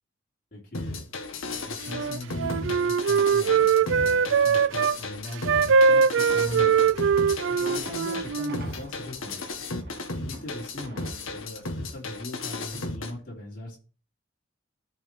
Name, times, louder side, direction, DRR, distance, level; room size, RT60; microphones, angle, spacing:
voice 1, 0.5-1.1 1.4-7.1 7.6-9.5 10.2-13.8, left 1 dB, 45° left, -4 dB, 3.2 m, -40 dB
sound 1, 0.7-13.1, left 3 dB, 85° left, 1.6 m, -35 dB
sound 2, 1.4-12.9, right 1 dB, 50° right, 1.7 m, -49 dB
Wind instrument woodwind instrument, 1.8-5.0 5.4-8.6, right 6 dB, 70° right, 0.4 m, -22 dB
14.0 x 5.0 x 4.5 m, 0.36 s
head